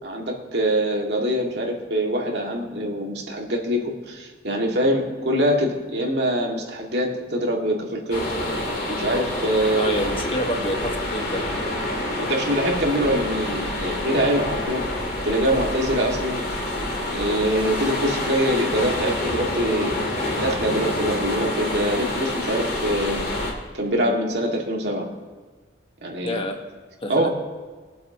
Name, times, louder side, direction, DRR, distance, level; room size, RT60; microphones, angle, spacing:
voice 1, 0.0-8.3 8.9-10.0 12.3-14.8 15.2-16.4 17.1-20.0 20.4-23.2 23.7-25.1 26.0-26.4 27.1-27.3, equal, 75° right, 0 dB, 2.0 m, -24 dB
sound 1, 8.1-23.5, left 1 dB, 60° left, 2.8 m, -27 dB
voice 2, 9.8-11.4 26.2-26.6 27.0-27.3, left 1 dB, 30° left, 3 dB, 1.3 m, -28 dB
21.5 x 7.8 x 2.9 m, 1.5 s
head